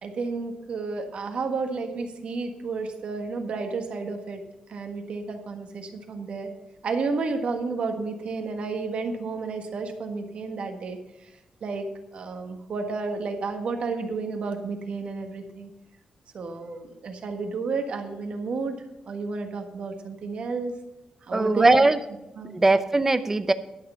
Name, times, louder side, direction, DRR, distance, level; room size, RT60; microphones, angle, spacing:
voice 1, 0.0-4.4 4.7-6.5 6.8-11.3 11.6-11.9 12.1-15.7 16.3-20.8 21.3-21.8 22.3-22.6, right 4 dB, 55° right, 5 dB, 1.5 m, -31 dB
voice 2, 21.3-22.0 22.5-23.5, right 2 dB, 15° right, 11 dB, 0.6 m, -20 dB
11.0 x 6.6 x 6.9 m, 0.96 s
wide cardioid pair, 165°, 2 cm